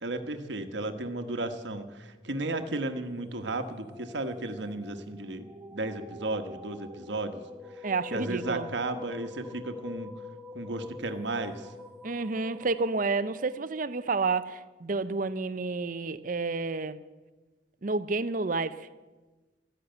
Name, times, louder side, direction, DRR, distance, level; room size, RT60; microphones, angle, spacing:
voice 1, 0.0-7.4 7.8-7.9 8.1-10.1 10.5-11.7, right 2 dB, 65° right, 1.3 m, -34 dB
sound 1, 2.3-13.7, left 2 dB, 10° right, 1.3 m, -47 dB
voice 2, 7.8-8.7 12.0-17.0 17.8-18.9, right 3 dB, 45° right, 0.6 m, -30 dB
13.5 x 10.5 x 9.0 m
head